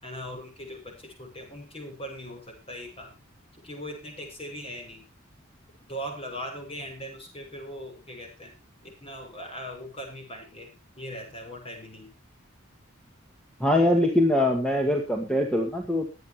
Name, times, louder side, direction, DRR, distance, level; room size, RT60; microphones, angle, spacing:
voice 1, 0.0-3.2 3.6-5.0 5.9-8.5 8.8-10.7 11.0-12.1 14.7-15.0, equal, 30° left, 2 dB, 6.3 m, -40 dB
voice 2, 13.6-16.1, left 1 dB, 5° left, 2 dB, 1.9 m, -23 dB
22.0 x 9.6 x 3.0 m, 0.29 s
head